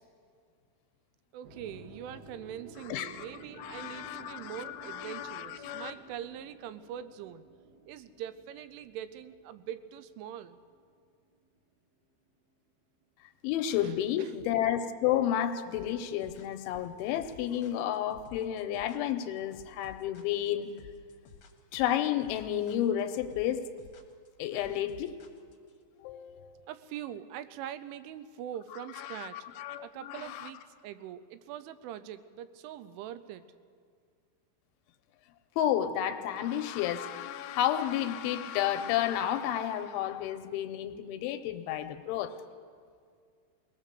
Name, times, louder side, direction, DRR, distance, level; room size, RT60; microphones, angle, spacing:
voice 1, 1.3-7.5 7.9-10.6 13.8-13.9 14.2-14.3 26.7-29.4 29.8-33.5, right 10 dB, 85° right, 12 dB, 3.2 m, -43 dB
sound 1, 1.4-11.6, right 2 dB, 65° right, 4.2 m, -54 dB
voice 2, 2.9-3.3 3.6-5.9 13.4-20.8 21.7-23.7 24.4-25.2 26.0-26.6 29.0-30.5 35.6-42.3, left 11 dB, 80° left, 8 dB, 3.1 m, -31 dB
sound 2, 15.7-25.8, left 7 dB, 60° left, 1.9 m, -54 dB
21.5 x 18.5 x 6.8 m, 2.1 s
omnidirectional pair, 5.5 m